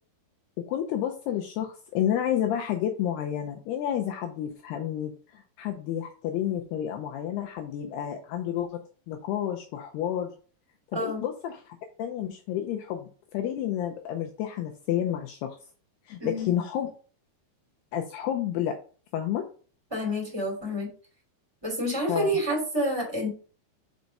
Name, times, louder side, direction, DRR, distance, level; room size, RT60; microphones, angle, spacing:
voice 1, 0.7-8.8 9.1-10.3 10.9-15.6 16.1-16.9 17.9-18.8 19.1-19.4 22.1-22.3, left 10 dB, 80° left, 4 dB, 2.4 m, -30 dB
voice 2, 10.9-11.2 16.2-16.5 19.9-20.9 21.6-23.3, equal, 10° right, 0 dB, 1.9 m, -28 dB
5.9 x 5.2 x 5.3 m, 0.40 s
omnidirectional pair, 5.3 m